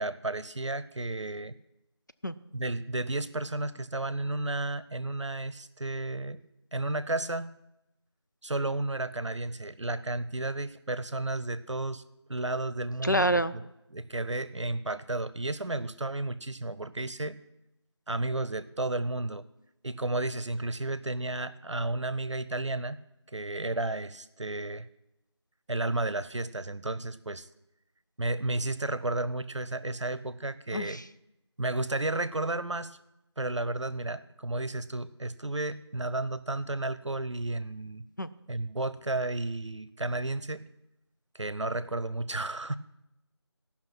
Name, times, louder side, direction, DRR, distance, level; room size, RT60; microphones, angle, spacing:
voice 1, 0.0-1.5 2.5-6.4 6.7-7.5 8.4-12.0 12.3-17.4 18.1-19.4 19.8-23.0 23.3-24.9 25.7-27.5 28.2-31.0 31.6-33.0 33.4-38.0 38.5-40.6 41.3-42.8, right 2 dB, 90° right, 15 dB, 0.7 m, -32 dB
voice 2, 13.0-13.5 30.7-31.0 38.2-38.3, equal, 40° left, 10 dB, 0.4 m, -26 dB
15.5 x 5.9 x 6.0 m, 0.88 s
figure-of-eight pair, 175°, 15 cm